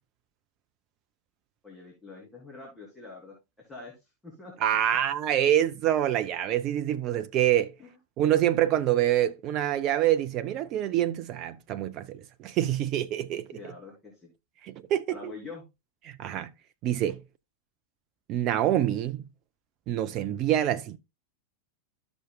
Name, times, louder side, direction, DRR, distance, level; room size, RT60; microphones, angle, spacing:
voice 1, 1.6-4.5 7.8-7.9 13.5-14.3 15.1-15.6, left 3 dB, 15° left, 2.9 m, -45 dB
voice 2, 4.6-7.7 8.2-13.5 14.6-15.2 16.0-16.5 16.8-17.2 18.3-19.2 19.9-21.0, right 12 dB, 35° right, 0.5 m, -26 dB
13.0 x 6.1 x 2.3 m
figure-of-eight pair, 90°, 0 cm